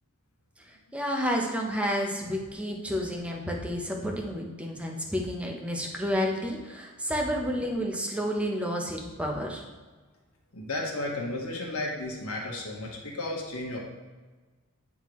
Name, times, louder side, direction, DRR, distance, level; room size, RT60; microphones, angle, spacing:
voice 1, 0.9-9.6, equal, 5° right, 0 dB, 0.9 m, -30 dB
voice 2, 10.5-13.8, left 2 dB, 75° left, -1 dB, 1.4 m, -33 dB
9.5 x 3.7 x 3.1 m, 1.3 s
head